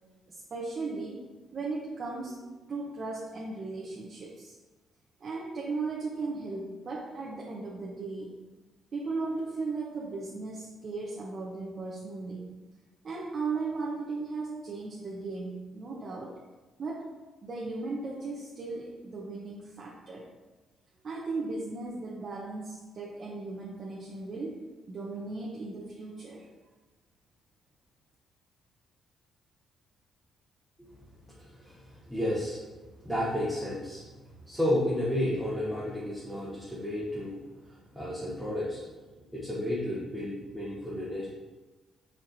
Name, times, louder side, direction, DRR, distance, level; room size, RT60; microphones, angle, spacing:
voice 1, 0.3-1.2 1.5-2.4 2.7-4.6 5.2-8.4 8.9-12.4 13.0-16.3 16.8-17.1 17.4-20.3 21.0-26.5, right 3 dB, 45° right, -4 dB, 0.7 m, -36 dB
voice 2, 31.4-32.6 33.0-34.0 34.4-38.9 39.3-41.3, left 1 dB, ahead, -8 dB, 0.9 m, -32 dB
4.5 x 4.3 x 2.6 m, 1.2 s
cardioid pair, 90°, 0 cm